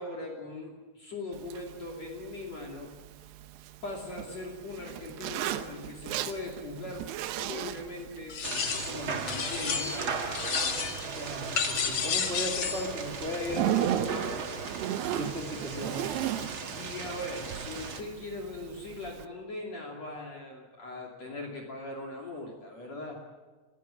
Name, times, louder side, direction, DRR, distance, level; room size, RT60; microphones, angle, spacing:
voice 1, 0.0-2.9 3.8-7.1 7.4-10.1 16.8-23.2, left 2 dB, 40° left, 0 dB, 3.6 m, -40 dB
Zipper (clothing), 1.3-19.3, right 11 dB, 75° right, 2.9 m, -37 dB
sound 1, 8.3-9.0 9.3-10.1 10.3-11.1 11.6-12.9, left 7 dB, 60° left, 1.8 m, -31 dB
sound 2, 8.4-18.0, right 5 dB, 45° right, 1.8 m, -37 dB
voice 2, 11.0-14.1 15.1-16.0, left 1 dB, 15° right, 1 dB, 3.6 m, -36 dB
29.0 x 17.0 x 8.8 m, 1.3 s
omnidirectional pair, 5.2 m